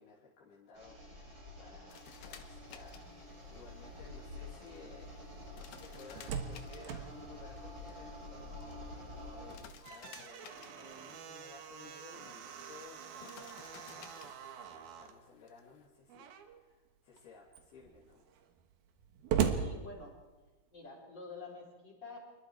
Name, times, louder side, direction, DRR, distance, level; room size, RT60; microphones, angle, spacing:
voice 1, 0.0-18.2, left 5 dB, 80° left, -4 dB, 4.7 m, -57 dB
sound 1, 0.7-9.6, left 1 dB, 25° right, 8.5 m, -49 dB
sound 2, 1.9-15.9, left 8 dB, 65° left, 2.9 m, -58 dB
Slam, 5.9-8.7 9.0-9.1 9.5-15.2 16.1-16.6 17.2-17.3 17.5-20.6, right 7 dB, 75° right, 3.3 m, -40 dB
voice 2, 19.5-20.2 20.7-22.2, left 3 dB, 25° left, -2 dB, 5.2 m, -48 dB
28.5 x 23.0 x 4.8 m, 1.2 s
omnidirectional pair, 4.4 m